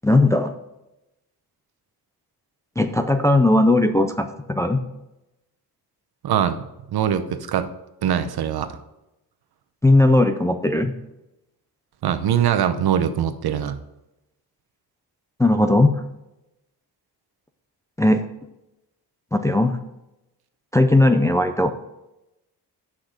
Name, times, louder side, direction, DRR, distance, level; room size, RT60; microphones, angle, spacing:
voice 1, 0.0-0.6 2.8-4.8 9.8-10.9 15.4-15.9 18.0-18.2 19.3-19.8 20.7-21.7, left 2 dB, 10° left, 7 dB, 0.3 m, -17 dB
voice 2, 6.2-6.6 6.9-7.7 8.0-8.8 12.0-13.8, right 9 dB, 65° right, 10 dB, 0.8 m, -22 dB
8.8 x 6.0 x 5.0 m, 0.92 s
wide cardioid pair, 160°, 40 cm